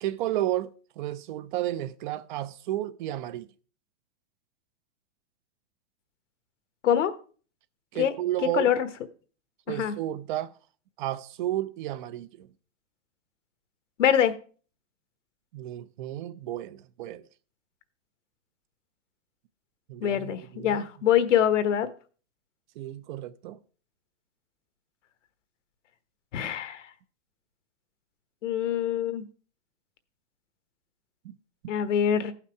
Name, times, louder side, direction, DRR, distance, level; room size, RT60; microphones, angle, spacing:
voice 1, 0.0-3.5 7.9-8.7 9.7-10.5 11.0-12.5 15.5-17.2 19.9-20.9 22.8-23.6 31.2-31.4 31.6-31.7, right 13 dB, 40° right, 0.5 m, -32 dB
voice 2, 8.5-8.9 9.7-9.9 14.0-14.3 20.0-21.9 26.3-26.9 28.4-29.3 31.7-32.3, left 9 dB, 75° left, 1.2 m, -24 dB
14.5 x 5.8 x 4.6 m
hypercardioid pair, 145°, 37 cm